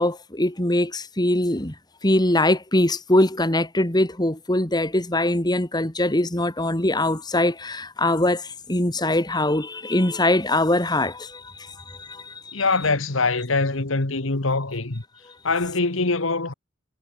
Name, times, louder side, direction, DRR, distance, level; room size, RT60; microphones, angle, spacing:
voice 1, 0.0-1.7 2.0-12.5, left 1 dB, 20° left, 2.2 m, -22 dB
voice 2, 12.5-15.0 15.4-16.5, left 3 dB, 70° left, 1.7 m, -23 dB
head